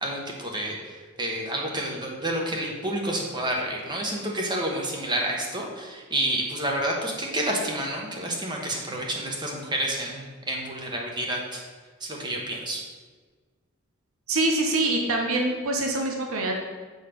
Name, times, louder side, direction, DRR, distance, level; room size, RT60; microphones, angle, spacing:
voice 1, 0.0-11.6 12.0-12.8, right 1 dB, 20° right, 0 dB, 1.0 m, -29 dB
voice 2, 14.3-16.5, right 2 dB, 80° right, 2 dB, 0.9 m, -25 dB
7.2 x 4.0 x 5.1 m, 1.4 s
head